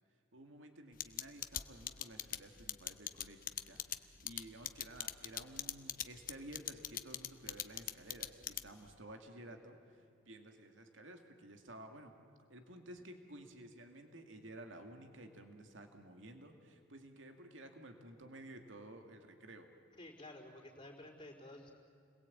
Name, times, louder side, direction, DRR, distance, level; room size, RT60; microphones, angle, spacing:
voice 1, 0.3-12.2 12.5-19.7, right 1 dB, 75° right, 5 dB, 2.3 m, -53 dB
sound 1, 1.0-8.9, left 11 dB, 45° left, 0.9 m, -40 dB
voice 2, 19.9-21.7, left 1 dB, 25° left, -2 dB, 4.4 m, -52 dB
30.0 x 21.5 x 8.6 m, 2.5 s
head